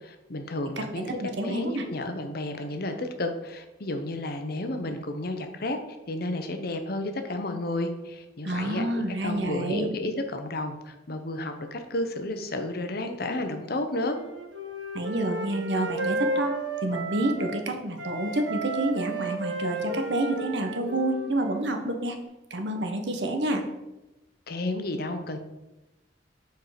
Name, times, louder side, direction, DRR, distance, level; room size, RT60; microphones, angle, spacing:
voice 1, 0.0-5.8 6.1-8.9 9.2-14.2 24.5-25.4, left 1 dB, 55° left, 6 dB, 0.8 m, -32 dB
voice 2, 1.2-1.8 8.4-9.9 14.9-16.5 16.8-22.2 22.5-23.6, right 1 dB, 70° right, 5 dB, 1.0 m, -28 dB
Wind instrument woodwind instrument, 14.1-17.6 18.0-21.7, right 2 dB, 85° right, 1.2 m, -33 dB
7.2 x 4.6 x 5.0 m, 1.0 s
head